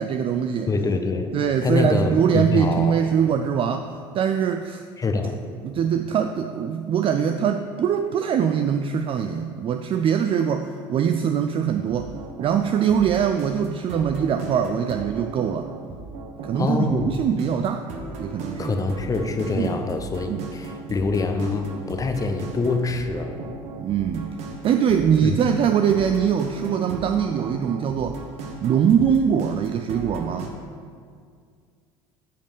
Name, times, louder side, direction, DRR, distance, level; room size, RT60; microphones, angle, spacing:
voice 1, 0.0-0.7 1.3-3.9 4.1-4.8 5.6-12.1 12.4-15.7 16.4-17.9 18.2-18.7 19.6-19.8 20.3-20.5 23.8-24.4 24.6-28.2 28.6-30.5, right 8 dB, 45° right, 7 dB, 0.4 m, -22 dB
voice 2, 0.7-1.3 1.6-3.0 5.0-5.4 16.6-17.1 18.6-23.4 25.2-25.4, left 3 dB, 25° left, 6 dB, 0.9 m, -25 dB
sound 1, 11.7-30.5, right 3 dB, 60° right, 1.3 m, -37 dB
8.6 x 5.2 x 5.4 m, 2.1 s
supercardioid pair, 80°, 13 cm